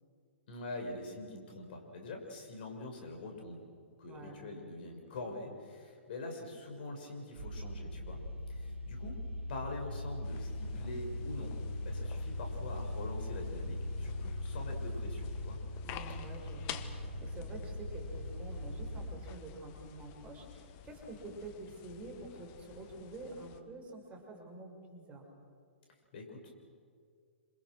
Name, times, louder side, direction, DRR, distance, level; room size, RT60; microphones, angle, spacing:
voice 1, 0.5-3.7 4.0-8.2 8.5-9.2 9.5-11.6 11.8-15.6 26.1-26.5, left 2 dB, 55° left, 3 dB, 6.4 m, -44 dB
voice 2, 4.1-4.4 15.8-25.3, right 2 dB, 20° right, 1 dB, 6.2 m, -48 dB
sound 1, 7.4-19.1, left 1 dB, 70° right, 3.0 m, -40 dB
sound 2, 10.2-23.6, left 9 dB, 35° left, 1.5 m, -51 dB
28.5 x 27.0 x 6.4 m, 2.2 s
figure-of-eight pair, 115°, 6 cm